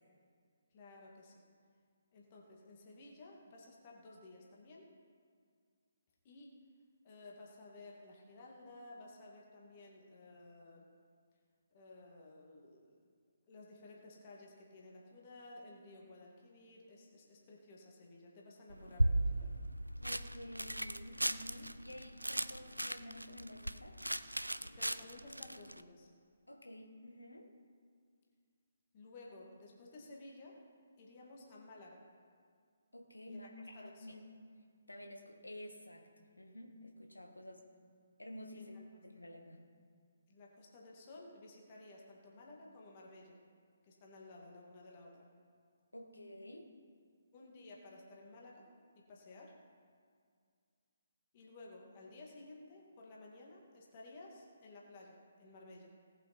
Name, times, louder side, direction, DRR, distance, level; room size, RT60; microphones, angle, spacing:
voice 1, 0.7-1.4 2.1-4.9 6.2-6.5 7.0-10.9 11.7-13.1 13.5-19.5 24.6-26.1 28.9-30.6 31.0-32.0 33.2-33.4 33.7-34.2 38.6-38.7 40.3-43.4 43.8-45.3 46.5-46.6 47.3-48.7 49.1-49.6 51.3-55.9, left 2 dB, 35° left, -2 dB, 2.3 m, -55 dB
sound 1, 18.7-25.8, right 1 dB, 85° right, 0.5 m, -37 dB
voice 2, 20.0-24.0 26.5-27.5 32.9-34.3 34.9-37.7 38.2-38.8 39.0-39.6 45.9-46.7, left 1 dB, 80° left, 3 dB, 1.9 m, -51 dB
18.5 x 7.9 x 4.5 m, 2.1 s
figure-of-eight pair, 140°, 0 cm